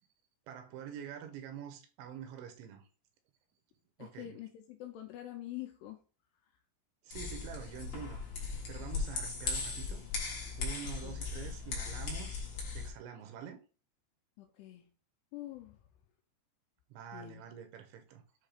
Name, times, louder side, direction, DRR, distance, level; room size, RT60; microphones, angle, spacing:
voice 1, 0.5-2.8 4.0-4.3 7.0-8.2 8.7-10.0 10.6-12.5 12.7-13.6 16.9-18.2, right 9 dB, 80° right, 3.2 m, -46 dB
voice 2, 4.0-6.0 11.0-11.3 14.4-14.9 15.3-15.8 17.1-17.4, left 14 dB, 85° left, 2.5 m, -45 dB
sound 1, 7.1-12.9, left 4 dB, 60° left, 1.6 m, -38 dB
7.5 x 2.7 x 4.9 m
omnidirectional pair, 5.2 m